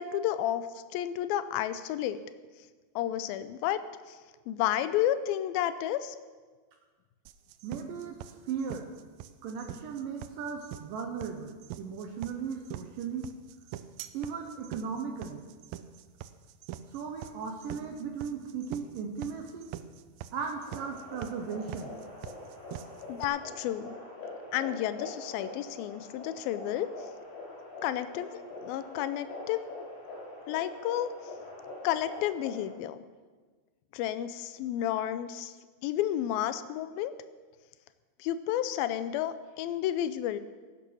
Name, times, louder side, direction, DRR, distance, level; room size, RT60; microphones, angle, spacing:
voice 1, 0.0-2.2 3.0-3.8 4.1-4.2 4.5-6.2 23.1-23.9 24.5-26.9 27.8-29.7 30.5-31.2 31.8-33.0 33.9-35.5 35.8-37.1 38.2-40.4, left 12 dB, 85° left, 12 dB, 2.1 m, -31 dB
sound 1, 7.3-23.3, right 12 dB, 90° right, 2.1 m, -43 dB
voice 2, 7.6-8.9 9.4-13.3 14.1-15.5 16.9-19.7 20.3-21.9, right 6 dB, 75° right, 4 dB, 2.1 m, -37 dB
sound 2, 20.5-32.7, left 2 dB, 45° left, 5.3 m, -44 dB
16.0 x 8.9 x 6.2 m, 1.4 s
omnidirectional pair, 4.8 m